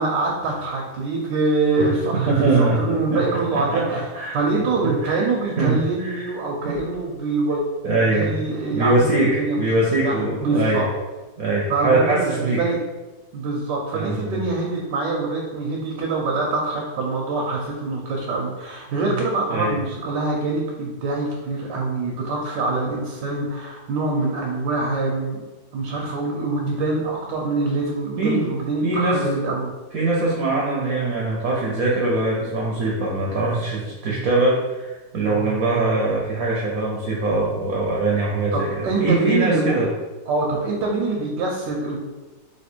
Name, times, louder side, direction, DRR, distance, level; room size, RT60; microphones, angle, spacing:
voice 1, 0.0-2.3 2.6-4.0 4.3-7.6 8.1-9.7 10.0-10.9 11.7-12.8 13.3-25.4 25.7-29.7 38.5-39.8 40.3-42.0, right 3 dB, 85° right, -2 dB, 1.4 m, -24 dB
voice 2, 2.3-2.8 3.1-3.2 3.5-4.4 4.8-5.3 5.6-6.3 6.7-6.8 7.8-8.4 8.7-10.8 11.4-12.6 13.9-14.4 19.5-19.8 28.2-28.5 28.8-29.2 29.9-39.9, right 2 dB, 65° right, -3 dB, 1.0 m, -22 dB
3.3 x 2.9 x 4.4 m, 1.2 s
omnidirectional pair, 1.9 m